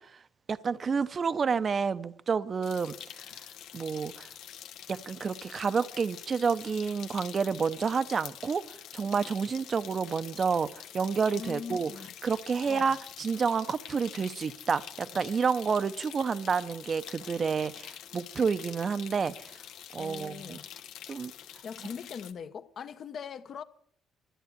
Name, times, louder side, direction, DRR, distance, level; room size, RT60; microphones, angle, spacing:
voice 1, 0.5-3.0 3.7-4.3 4.9-8.6 8.9-11.9 12.2-19.3 19.9-20.6 21.1-21.3, right 5 dB, 35° right, 0.7 m, -29 dB
sound 1, 2.6-22.3, left 10 dB, 80° left, 1.1 m, -46 dB
voice 2, 11.3-12.1 12.7-13.0 19.9-20.7 21.6-23.6, left 6 dB, 50° left, 1.0 m, -41 dB
13.0 x 8.3 x 9.7 m
cardioid pair, 115°, 0 cm